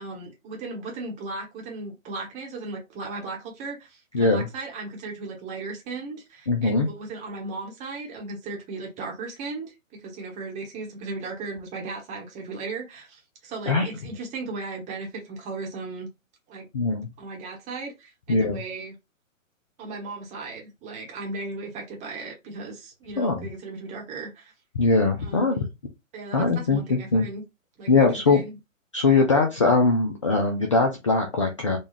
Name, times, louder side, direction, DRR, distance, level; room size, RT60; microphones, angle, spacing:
voice 1, 0.0-16.1 16.5-16.7 17.2-18.9 19.8-24.5 25.2-25.6 26.1-27.4 27.8-28.6, right 3 dB, 15° right, 1.0 m, -36 dB
voice 2, 4.1-4.5 6.5-6.9 13.7-13.9 16.7-17.1 18.3-18.6 23.2-23.4 24.8-25.7 26.3-27.3 27.9-28.4 28.9-31.8, left 3 dB, 25° left, 0.4 m, -21 dB
4.0 x 2.3 x 3.2 m
figure-of-eight pair, 120°, 40 cm